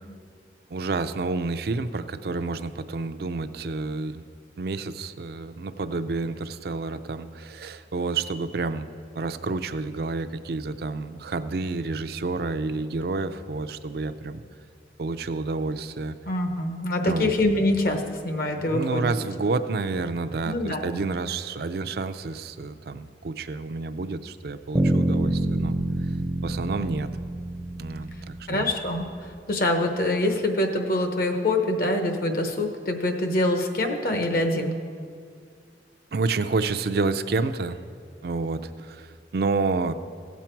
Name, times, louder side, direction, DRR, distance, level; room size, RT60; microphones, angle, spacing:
voice 1, 0.7-4.2 4.6-8.9 9.2-14.4 15.0-16.2 17.0-17.3 18.5-25.7 26.4-27.1 27.7-28.7 36.1-37.8 38.2-39.9, right 3 dB, 60° right, 11 dB, 0.4 m, -29 dB
voice 2, 16.3-19.1 20.4-21.0 28.5-29.0 29.5-34.8, left 1 dB, 55° left, 5 dB, 1.0 m, -25 dB
sound 1, 24.8-28.7, right 1 dB, 5° right, 0.5 m, -27 dB
16.0 x 7.2 x 4.5 m, 2.2 s
head